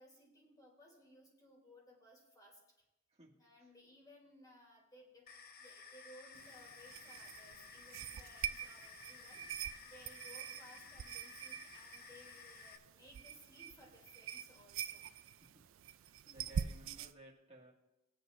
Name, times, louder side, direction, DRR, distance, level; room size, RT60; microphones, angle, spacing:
voice 1, 0.0-2.6 3.4-9.6 9.8-15.0, equal, 20° left, -1 dB, 3.1 m, -61 dB
voice 2, 3.1-3.7 15.4-15.6 16.2-17.7, right 1 dB, 30° right, -3 dB, 2.1 m, -58 dB
sound 1, 5.3-12.8, left 5 dB, 50° left, 0.8 m, -55 dB
sound 2, 6.3-17.1, right 8 dB, 70° right, 0.4 m, -45 dB
21.0 x 7.7 x 2.6 m, 0.97 s
head